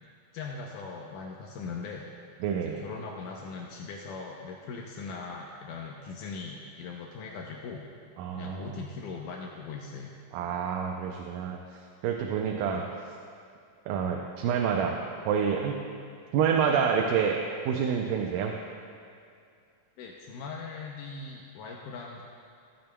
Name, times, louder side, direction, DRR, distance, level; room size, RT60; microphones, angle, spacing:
voice 1, 0.3-2.1 2.6-7.8 8.3-10.1 12.7-12.9 20.0-22.2, left 4 dB, 80° left, -1 dB, 2.2 m, -40 dB
voice 2, 2.4-2.8 8.2-8.8 10.3-11.6 12.0-12.8 13.9-15.0 15.3-15.8 16.3-17.4 17.7-18.5, right 7 dB, 80° right, 1 dB, 2.2 m, -27 dB
15.0 x 10.5 x 2.3 m, 2.3 s
omnidirectional pair, 3.9 m